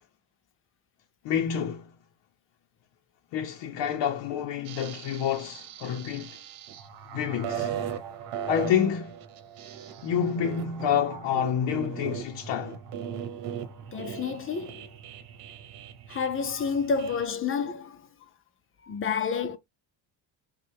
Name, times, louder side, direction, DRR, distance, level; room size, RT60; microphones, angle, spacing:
voice 1, 1.2-1.9 3.3-6.4 7.1-7.7 8.5-9.2 10.0-12.8, left 8 dB, 60° left, 0.8 m, -28 dB
sound 1, 4.6-17.3, right 9 dB, 80° right, 1.0 m, -38 dB
voice 2, 13.9-14.9 16.1-18.1 18.8-19.6, left 6 dB, 30° left, 0.4 m, -29 dB
5.4 x 2.4 x 3.3 m
cardioid pair, 155°, 49 cm